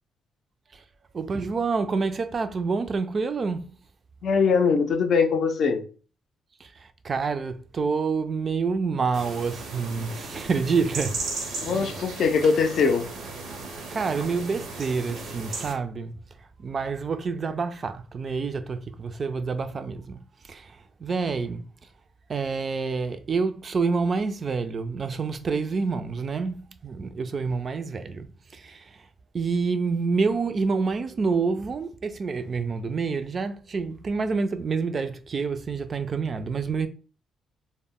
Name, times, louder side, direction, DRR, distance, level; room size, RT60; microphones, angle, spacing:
voice 1, 1.1-3.7 6.6-11.2 11.7-11.9 13.9-16.1 16.6-21.6 22.3-29.0 29.3-36.9, right 4 dB, 40° right, 0.3 m, -28 dB
voice 2, 4.2-5.8 11.6-13.1, left 5 dB, 60° left, 0.4 m, -22 dB
sound 1, 9.1-15.7, right 3 dB, 85° right, 0.6 m, -36 dB
2.1 x 2.0 x 3.6 m
cardioid pair, 90°, 0 cm